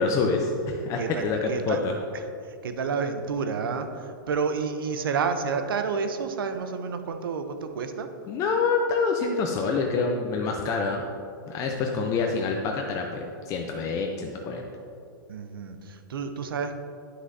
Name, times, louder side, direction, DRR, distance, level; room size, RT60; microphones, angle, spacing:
voice 1, 0.0-1.9 8.3-11.0 11.5-14.7, left 4 dB, 30° left, 2 dB, 0.5 m, -26 dB
voice 2, 1.0-1.8 2.1-2.2 2.6-8.1 11.7-12.2 15.3-16.8, right 5 dB, 90° right, 8 dB, 0.6 m, -30 dB
9.6 x 6.2 x 2.7 m, 2.5 s
hypercardioid pair, 140°, 11 cm